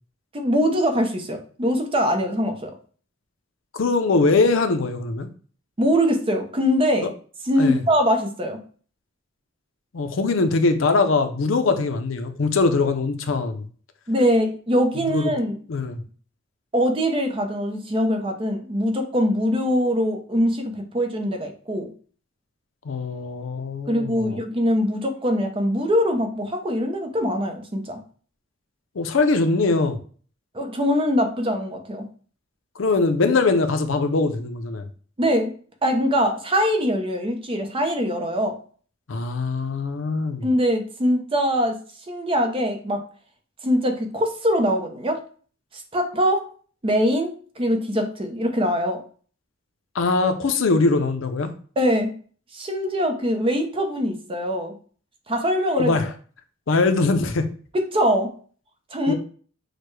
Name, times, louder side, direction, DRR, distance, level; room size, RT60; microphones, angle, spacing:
voice 1, 0.3-2.7 5.8-7.1 7.4-8.6 14.1-15.6 16.7-21.9 23.9-28.0 30.5-32.1 35.2-35.5 35.8-38.6 40.4-41.8 42.1-43.0 43.6-45.2 45.7-46.5 46.8-49.0 51.8-52.1 52.5-54.7 55.3-55.9 57.7-58.3 58.9-59.1, equal, 25° right, 5 dB, 0.6 m, -22 dB
voice 2, 3.7-5.3 7.6-7.8 9.9-13.7 15.1-15.3 15.7-16.0 22.8-24.4 29.0-30.0 32.8-34.8 39.1-40.5 49.9-51.5 55.8-56.1 56.7-57.5 59.1-59.2, left 3 dB, 70° left, 8 dB, 0.6 m, -22 dB
6.4 x 2.2 x 3.1 m, 0.42 s
head